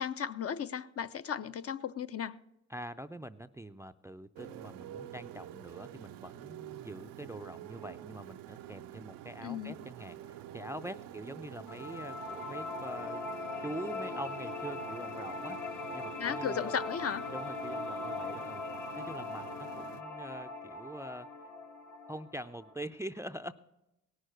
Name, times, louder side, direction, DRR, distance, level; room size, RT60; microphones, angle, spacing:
voice 1, 0.0-2.4 9.4-9.7 16.2-17.3, left 8 dB, 45° left, 0.5 m, -35 dB
voice 2, 2.7-13.2 13.6-15.6 15.9-16.8 17.3-18.6 19.0-21.3 22.1-23.5, right 1 dB, 10° right, 0.3 m, -44 dB
Motorcycle, 4.4-20.0, right 12 dB, 90° right, 0.5 m, -48 dB
sound 1, 11.7-22.7, left 3 dB, 65° left, 1.6 m, -40 dB
17.5 x 6.5 x 6.4 m
cardioid pair, 65°, 33 cm